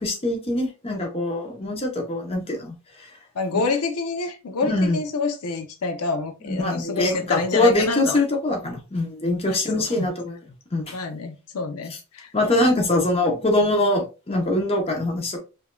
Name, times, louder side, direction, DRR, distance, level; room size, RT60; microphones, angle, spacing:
voice 1, 0.0-2.7 3.0-3.1 3.5-3.6 4.6-5.0 6.4-10.3 10.7-11.0 12.3-15.4, left 1 dB, 25° left, 0.8 m, -23 dB
voice 2, 3.3-8.2 9.5-10.1 10.9-12.3, left 3 dB, 90° left, 0.6 m, -27 dB
4.9 x 2.5 x 2.2 m
head